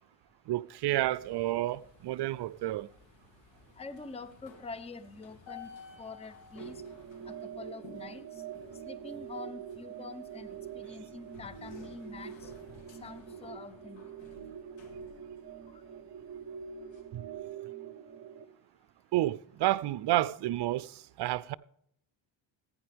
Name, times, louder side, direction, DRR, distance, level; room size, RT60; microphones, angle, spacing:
voice 1, 0.5-2.9 17.1-17.2 19.1-21.5, right 15 dB, 55° right, 0.6 m, -30 dB
sound 1, 0.9-17.0, left 5 dB, 65° left, 2.9 m, -56 dB
voice 2, 3.8-5.7 6.0-6.8 7.4-8.2 8.9-12.5 13.0-14.0, left 3 dB, 15° left, 0.7 m, -45 dB
sound 2, 6.6-18.4, right 8 dB, 30° right, 1.2 m, -45 dB
15.0 x 9.5 x 3.5 m
cardioid pair, 100°, 48 cm